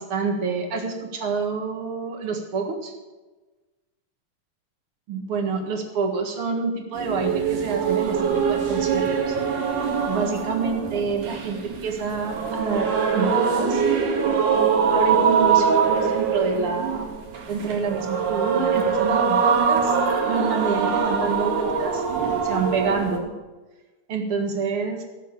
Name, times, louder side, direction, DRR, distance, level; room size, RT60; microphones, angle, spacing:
voice 1, 0.0-2.9 5.1-9.4 10.1-13.8 14.9-17.1 17.5-20.0 20.2-22.0 22.4-23.3 24.1-25.0, right 4 dB, 50° right, 3 dB, 2.1 m, -27 dB
sound 1, 6.9-23.2, right 6 dB, 65° right, 3.5 m, -23 dB
16.0 x 7.1 x 6.7 m, 1.2 s
omnidirectional pair, 3.9 m